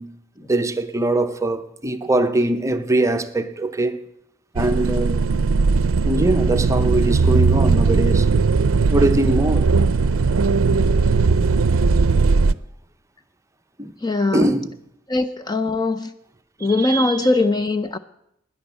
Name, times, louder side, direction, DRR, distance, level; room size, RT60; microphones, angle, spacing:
voice 1, 0.0-4.0 4.5-5.2 6.0-8.3 8.9-9.7 13.8-13.9 14.3-14.8 16.6-17.3, right 1 dB, 15° right, 0.7 m, -22 dB
sound 1, 4.6-12.5, right 4 dB, 80° right, 0.5 m, -18 dB
voice 2, 14.0-14.5 15.1-16.1 16.6-18.0, left 2 dB, 20° left, 0.5 m, -21 dB
11.5 x 10.5 x 8.2 m
head